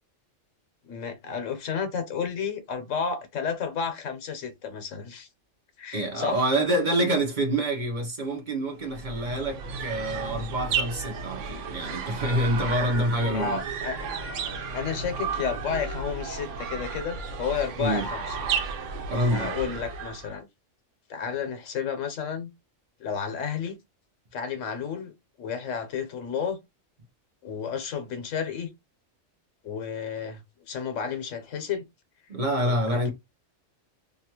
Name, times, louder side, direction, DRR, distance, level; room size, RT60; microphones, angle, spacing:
voice 1, 0.9-5.3 5.8-6.5 13.2-14.1 14.7-18.4 19.1-20.5 21.1-22.5 23.0-23.8 24.3-25.1 25.4-26.6 27.4-28.7 29.6-31.8 32.6-33.1, left 6 dB, 85° left, 1.2 m, -32 dB
voice 2, 5.9-13.6 17.8-18.1 19.1-19.5 32.3-33.1, right 1 dB, 45° right, 0.8 m, -27 dB
sound 1, 8.8-20.4, right 5 dB, 80° right, 1.0 m, -33 dB
2.9 x 2.4 x 2.9 m
omnidirectional pair, 1.3 m